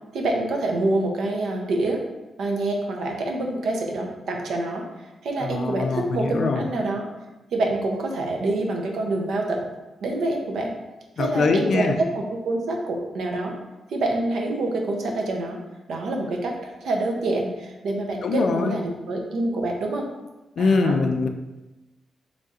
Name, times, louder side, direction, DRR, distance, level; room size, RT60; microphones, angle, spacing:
voice 1, 0.1-2.0 2.4-4.8 5.2-7.1 7.5-9.6 10.0-10.7 11.2-11.9 12.1-13.5 13.9-15.6 15.9-20.1 20.6-21.0, right 2 dB, 75° right, 1 dB, 0.6 m, -26 dB
voice 2, 5.4-6.6 11.2-11.9 18.2-18.8 20.6-21.3, left 4 dB, 55° left, 5 dB, 0.3 m, -23 dB
4.0 x 3.2 x 2.4 m, 1.1 s
wide cardioid pair, 150°, 0 cm